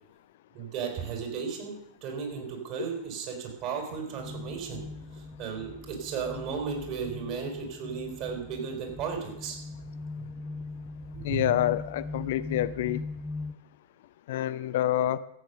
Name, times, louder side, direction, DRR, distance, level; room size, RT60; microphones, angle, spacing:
voice 1, 0.5-4.8 5.1-9.6 11.1-11.5, right 6 dB, 45° right, 2 dB, 4.3 m, -35 dB
sound 1, 4.2-13.5, left 3 dB, 5° left, 0.7 m, -40 dB
voice 2, 11.2-13.0 14.3-15.2, left 12 dB, 55° left, 15 dB, 0.5 m, -27 dB
14.0 x 8.2 x 6.7 m, 0.81 s
figure-of-eight pair, 90°, 0 cm